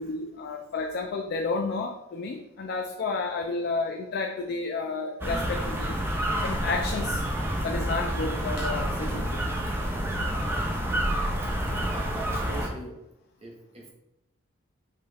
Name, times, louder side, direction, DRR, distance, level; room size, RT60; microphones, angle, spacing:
voice 1, 0.0-6.0 6.4-7.2 7.6-9.4, left 3 dB, 50° left, 3 dB, 0.3 m, -31 dB
sound 1, 5.2-12.7, equal, 10° right, 0.5 m, -28 dB
voice 2, 11.9-13.0 13.4-13.9, right 1 dB, 30° right, -2 dB, 0.8 m, -42 dB
5.4 x 2.3 x 3.3 m, 0.90 s
head